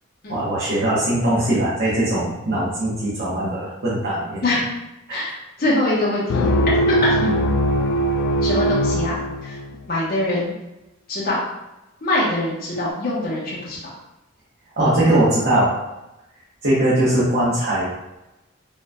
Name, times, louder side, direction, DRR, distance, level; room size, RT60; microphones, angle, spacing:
voice 1, 0.3-4.4 5.1-5.2 14.8-15.8 16.6-17.9, right 1 dB, 50° right, -9 dB, 1.1 m, -20 dB
voice 2, 5.6-6.5 6.9-7.3 8.4-9.5 9.9-10.5 11.1-11.4 12.0-13.8, left 1 dB, 50° left, -8 dB, 1.1 m, -23 dB
sound 1, 6.3-9.9, equal, 70° left, 0.4 m, -20 dB
4.4 x 3.2 x 2.3 m, 0.96 s
head